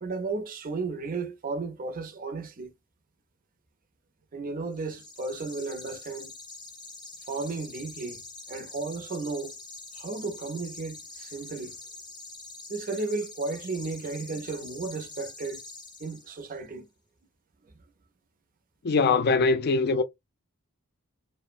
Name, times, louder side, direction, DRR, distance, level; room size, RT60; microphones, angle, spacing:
voice 1, 0.0-2.7 4.3-6.3 7.3-8.2 8.5-9.6 9.9-11.8 12.7-15.6 16.0-16.9, right 3 dB, 40° right, 0.6 m, -34 dB
sound 1, 4.7-16.6, left 3 dB, 20° left, 0.7 m, -45 dB
voice 2, 18.8-20.0, left 4 dB, 50° left, 0.4 m, -22 dB
2.7 x 2.0 x 2.4 m
head